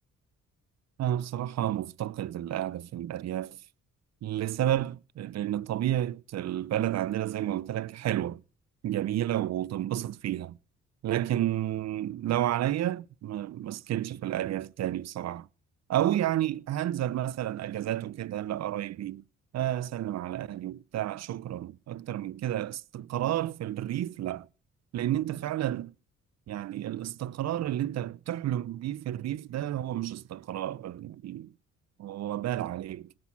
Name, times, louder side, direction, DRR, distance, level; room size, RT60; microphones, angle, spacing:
voice 1, 1.0-3.6 4.2-8.4 8.8-10.6 11.0-15.5 15.9-19.2 19.5-24.5 24.9-25.9 26.5-31.5 32.0-33.0, right 12 dB, 60° right, 0.7 m, -31 dB
18.0 x 7.5 x 8.4 m
cardioid pair, 90°, 30 cm